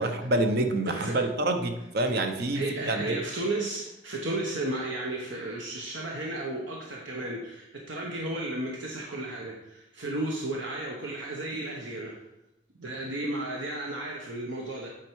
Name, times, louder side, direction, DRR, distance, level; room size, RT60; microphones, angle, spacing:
voice 1, 0.0-3.2, right 2 dB, 55° right, 6 dB, 0.7 m, -27 dB
voice 2, 0.9-1.2 2.5-12.2 12.8-14.9, right 2 dB, 75° right, -1 dB, 1.0 m, -33 dB
8.4 x 4.4 x 4.7 m, 0.88 s
head